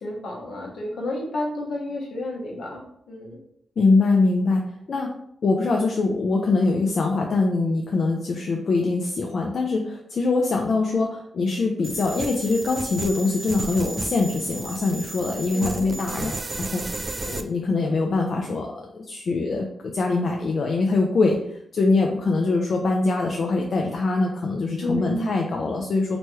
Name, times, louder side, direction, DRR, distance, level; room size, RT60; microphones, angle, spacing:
voice 1, 0.0-3.4 15.5-16.0 24.8-25.3, left 1 dB, 80° left, -1 dB, 0.8 m, -30 dB
voice 2, 3.8-4.6 4.9-5.1 5.4-16.3 16.7-21.4 21.7-26.2, left 3 dB, 65° left, 1 dB, 0.4 m, -23 dB
sound 1, 11.8-17.4, right 2 dB, 35° right, 0.3 m, -33 dB
2.9 x 2.2 x 3.0 m, 0.72 s
cardioid pair, 60°, 0 cm